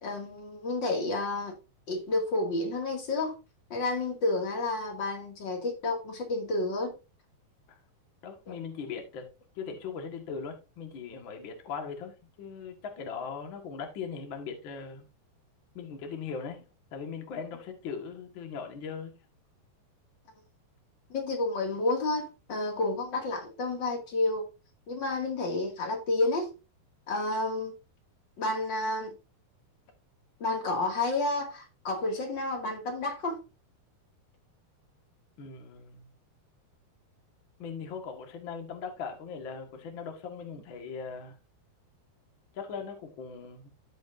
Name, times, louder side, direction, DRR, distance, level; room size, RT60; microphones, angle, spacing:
voice 1, 0.0-1.5 1.9-3.4 3.7-6.9 8.5-8.6 21.1-24.5 24.9-26.5 27.1-27.7 28.4-29.1 30.4-33.4, left 2 dB, 35° left, 2.1 m, -30 dB
voice 2, 8.2-9.3 9.5-15.1 15.7-16.6 16.9-19.1 35.4-36.1 37.6-41.4 42.5-43.7, left 6 dB, 60° left, 1.3 m, -39 dB
15.0 x 5.3 x 2.6 m
omnidirectional pair, 4.6 m